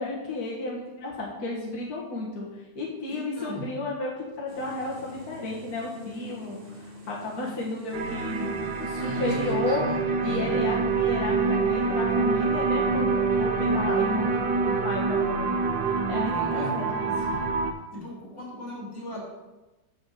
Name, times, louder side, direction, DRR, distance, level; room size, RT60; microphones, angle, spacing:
voice 1, 0.0-9.8 10.2-15.6 16.1-17.5, left 3 dB, 55° left, -4 dB, 1.9 m, -33 dB
voice 2, 3.1-3.6 9.0-10.5 16.3-16.8 17.9-19.2, equal, 80° left, -4 dB, 4.1 m, -36 dB
sound 1, 4.5-9.6, equal, 45° right, 1.5 m, -45 dB
sound 2, 7.9-17.7, right 4 dB, 90° right, 1.6 m, -26 dB
7.4 x 6.8 x 6.6 m, 1.1 s
omnidirectional pair, 1.9 m